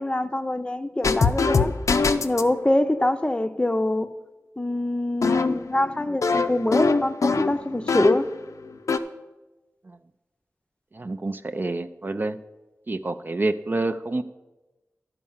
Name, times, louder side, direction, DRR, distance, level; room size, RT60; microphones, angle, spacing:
voice 1, 0.0-1.7 2.2-4.1 4.6-8.3, left 1 dB, 20° left, 0.6 m, -24 dB
sound 1, 1.0-2.5 5.2-8.4 8.7-9.0, left 4 dB, 75° left, 0.5 m, -23 dB
voice 2, 10.9-12.4 12.9-14.2, right 2 dB, 35° right, 0.4 m, -28 dB
11.5 x 4.7 x 7.2 m
wide cardioid pair, 60°, 5 cm